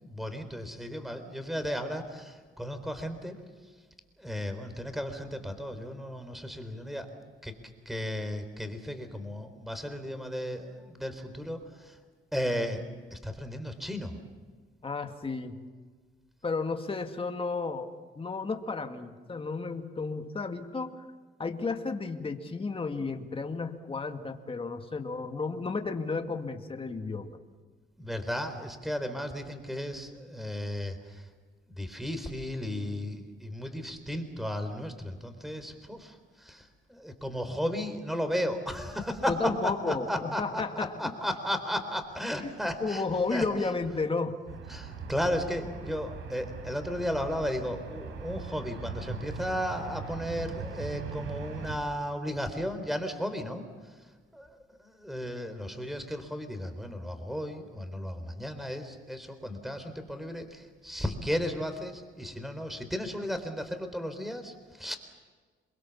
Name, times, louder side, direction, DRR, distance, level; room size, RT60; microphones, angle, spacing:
voice 1, 0.0-3.4 4.2-7.1 7.4-7.6 7.9-12.0 12.3-12.8 13.1-14.2 28.0-31.3 31.8-43.0 43.3-43.5 44.7-53.7 54.3-65.0, equal, ahead, 8 dB, 3.9 m, -34 dB
voice 2, 14.8-15.6 16.4-17.9 18.2-21.0 21.4-27.3 39.3-41.0 42.4-42.5 42.8-44.4, left 4 dB, 25° left, 5 dB, 2.2 m, -32 dB
sound 1, 44.5-51.8, right 5 dB, 85° right, 3.9 m, -40 dB
27.5 x 22.5 x 7.3 m, 1.5 s
cardioid pair, 90°, 20 cm